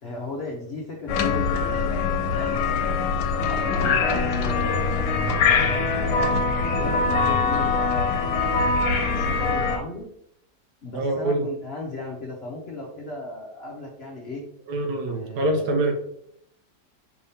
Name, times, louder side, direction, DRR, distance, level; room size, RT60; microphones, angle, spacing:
voice 1, 0.0-3.0 3.5-5.1 5.6-6.4 6.6-8.3 8.8-10.1 10.8-14.4 15.0-15.6, left 2 dB, 55° left, -2 dB, 0.7 m, -36 dB
sound 1, 1.1-9.8, left 4 dB, 85° left, 1.2 m, -23 dB
voice 2, 10.9-11.4 14.7-15.9, right 2 dB, 75° right, 3 dB, 1.4 m, -25 dB
4.8 x 3.5 x 2.7 m, 0.71 s
omnidirectional pair, 1.8 m